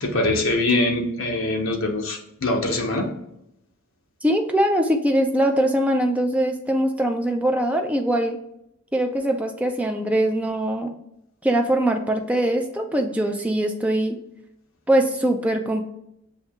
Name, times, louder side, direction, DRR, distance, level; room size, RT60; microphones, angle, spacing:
voice 1, 0.0-3.1, left 2 dB, 65° left, 2 dB, 0.9 m, -23 dB
voice 2, 4.2-8.4 8.9-10.9 11.4-14.2 14.9-15.8, right 1 dB, 5° right, 3 dB, 0.3 m, -22 dB
6.7 x 2.7 x 2.4 m, 0.80 s
head